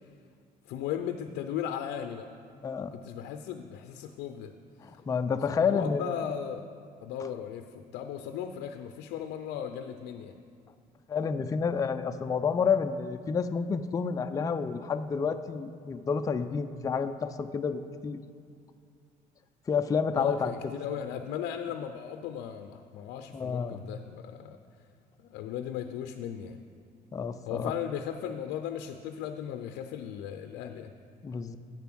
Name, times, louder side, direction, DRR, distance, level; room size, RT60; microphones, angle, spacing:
voice 1, 0.7-2.3 2.9-4.5 5.7-6.7 7.0-10.3 20.1-24.6 25.2-26.6 27.5-30.9, left 9 dB, 85° left, 7 dB, 0.4 m, -36 dB
voice 2, 2.6-2.9 4.8-6.2 11.1-18.2 19.7-20.5 23.3-23.8 27.1-27.7 31.2-31.6, left 6 dB, 20° left, 8 dB, 0.3 m, -29 dB
8.1 x 7.0 x 6.1 m, 2.2 s
cardioid pair, 110°, 17 cm